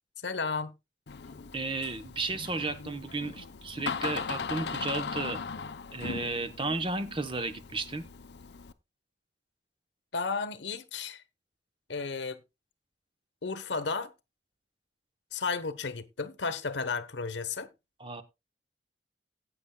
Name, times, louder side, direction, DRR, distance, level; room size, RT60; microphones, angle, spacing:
voice 1, 0.2-0.7 10.1-11.2 11.9-12.4 13.4-14.1 15.3-17.7, left 4 dB, 90° left, 1.0 m, -33 dB
Door, 1.1-8.7, left 5 dB, 70° left, 0.6 m, -39 dB
voice 2, 1.5-5.4 5.9-8.1 18.0-18.2, right 3 dB, 30° right, 0.8 m, -33 dB
16.0 x 8.6 x 2.2 m
head